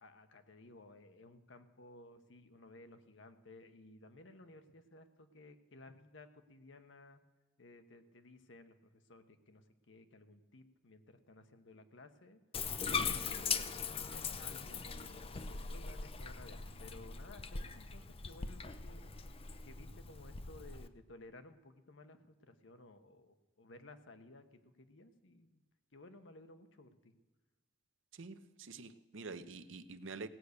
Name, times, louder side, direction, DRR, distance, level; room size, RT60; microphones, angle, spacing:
voice 1, 0.0-7.2 7.6-12.4 13.0-13.7 13.9-19.0 19.7-25.6 25.9-27.1, left 2 dB, 70° left, 8 dB, 1.1 m, -57 dB
Bathtub (filling or washing), 12.5-20.9, left 5 dB, 30° left, 0.6 m, -40 dB
voice 2, 28.1-30.3, right 4 dB, 75° right, 11 dB, 0.7 m, -47 dB
17.0 x 8.3 x 6.6 m, 1.2 s
head